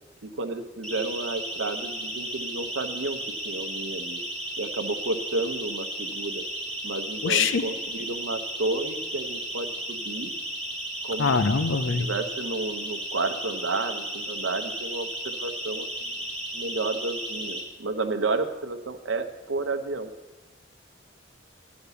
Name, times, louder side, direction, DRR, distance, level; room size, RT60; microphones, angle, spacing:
voice 1, 0.2-4.2 4.6-6.4 6.8-10.3 11.0-11.3 12.0-16.2 16.5-20.1, right 3 dB, 75° right, 8 dB, 0.8 m, -31 dB
Siren, 0.8-17.6, right 1 dB, 5° left, 1.8 m, -34 dB
voice 2, 7.2-7.6 11.2-12.1, left 5 dB, 75° left, 11 dB, 0.5 m, -23 dB
9.8 x 5.2 x 6.9 m, 1.1 s
head